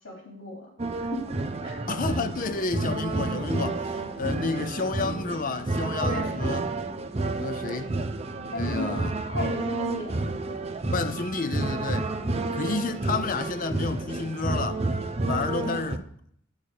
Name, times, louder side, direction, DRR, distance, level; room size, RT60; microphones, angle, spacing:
voice 1, 0.0-1.3 1.6-1.8 6.0-6.4 8.5-9.0 9.2-10.5 12.2-12.6 15.5-16.0, left 2 dB, 85° left, 3.8 m, -36 dB
sound 1, 0.8-16.0, right 2 dB, 30° right, 0.7 m, -30 dB
voice 2, 1.9-6.6 7.4-8.0 8.5-9.1 10.9-12.2 12.5-14.9 15.3-16.0, left 4 dB, 45° left, 0.6 m, -30 dB
11.0 x 4.7 x 6.5 m
head